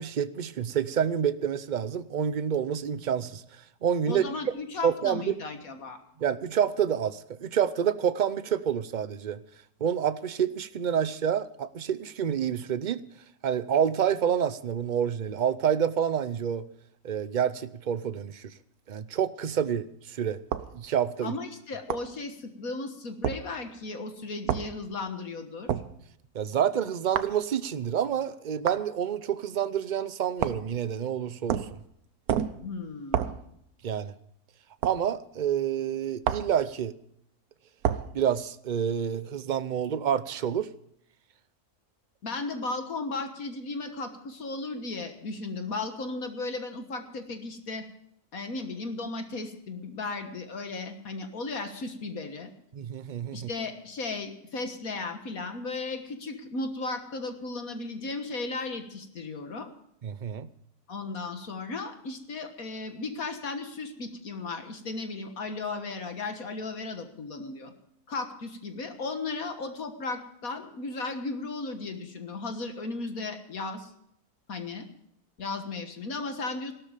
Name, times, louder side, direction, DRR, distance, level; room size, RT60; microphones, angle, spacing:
voice 1, 0.0-3.4 3.8-4.6 4.8-5.3 6.2-9.4 9.8-13.0 13.4-16.6 17.0-18.5 18.9-20.4 20.7-21.3 26.3-31.7 33.8-34.1 34.8-36.9 38.1-40.7 52.7-53.5 60.0-60.5, right 8 dB, 50° right, 14 dB, 0.6 m, -28 dB
voice 2, 4.1-6.0 21.2-25.7 32.6-33.4 42.2-47.9 48.3-52.5 53.3-59.7 60.9-67.7 68.1-73.9 74.5-74.9 75.4-76.7, left 3 dB, 65° left, 6 dB, 1.9 m, -35 dB
sound 1, 20.5-20.7 21.9-22.1 23.2-23.4 24.5-24.7 25.7-25.9 27.1-27.4 28.7-28.8 30.4-30.7 31.5-31.8 32.3-32.6 33.1-33.4 34.8-35.0 36.2-36.5 37.8-38.1, right 9 dB, 75° right, 1.3 m, -28 dB
17.0 x 13.0 x 5.1 m, 0.72 s
omnidirectional pair, 1.6 m